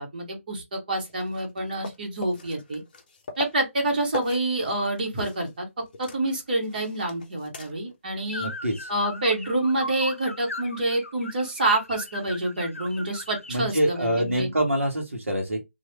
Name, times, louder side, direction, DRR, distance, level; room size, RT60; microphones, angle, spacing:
voice 1, 0.0-2.8 3.4-5.7 6.0-8.5 8.9-14.5, right 1 dB, 40° right, 1.4 m, -27 dB
sound 1, 0.9-5.6 5.8-8.0 8.3-8.4 11.0-11.1, left 3 dB, 40° left, 0.7 m, -41 dB
sound 2, 8.3-13.6, left 2 dB, 75° left, 0.7 m, -38 dB
voice 2, 8.4-8.9 13.5-15.6, right 1 dB, 70° right, 1.1 m, -25 dB
3.1 x 2.5 x 2.9 m
figure-of-eight pair, 150°, 7 cm